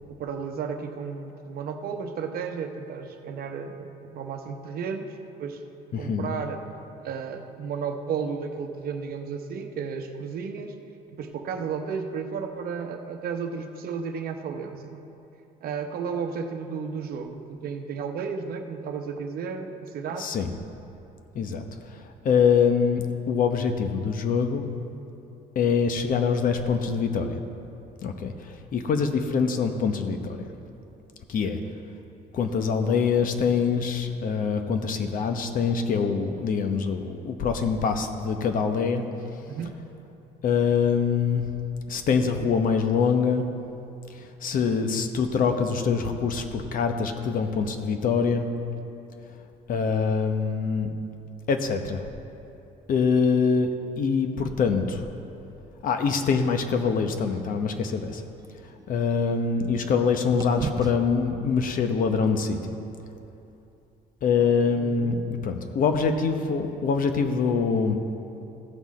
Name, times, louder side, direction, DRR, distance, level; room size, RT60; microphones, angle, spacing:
voice 1, 0.1-5.6 6.0-6.6 7.0-10.7 11.2-15.0 15.6-20.4 39.5-39.8 64.4-64.5 64.8-65.3, right 6 dB, 65° right, 5 dB, 0.9 m, -33 dB
voice 2, 5.9-6.3 20.2-20.5 21.3-21.6 21.9-24.7 25.5-27.4 28.0-30.5 31.3-31.6 32.3-39.0 40.4-41.5 41.9-43.5 44.2-48.5 49.7-50.9 51.5-52.0 52.9-55.0 55.8-58.2 58.9-62.7 64.2-68.0, left 5 dB, 55° left, 6 dB, 0.9 m, -24 dB
sound 1, 57.7-60.0 60.4-64.6, right 5 dB, 25° right, 0.4 m, -40 dB
16.0 x 6.1 x 4.3 m, 2.8 s
cardioid pair, 110°, 17 cm